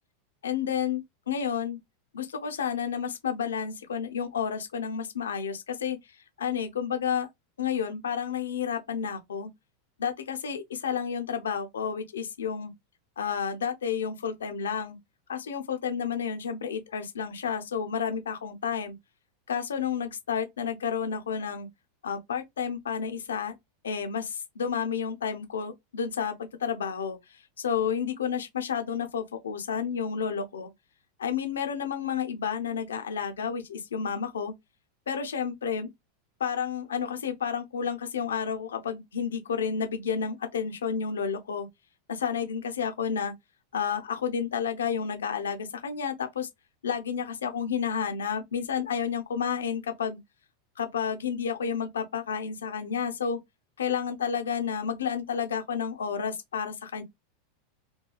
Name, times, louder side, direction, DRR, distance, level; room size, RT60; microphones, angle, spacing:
voice 1, 0.4-1.0 1.3-1.8 2.1-6.0 6.4-7.3 7.6-9.5 10.0-12.7 13.2-15.0 15.3-19.0 19.5-21.7 22.0-23.5 23.8-30.7 31.2-34.5 35.1-35.9 36.4-41.7 42.1-43.3 43.7-46.5 46.8-50.2 50.8-53.4 53.8-57.0, left 7 dB, 85° left, 0.6 m, -31 dB
3.0 x 2.3 x 2.3 m
hypercardioid pair, 100°, 0 cm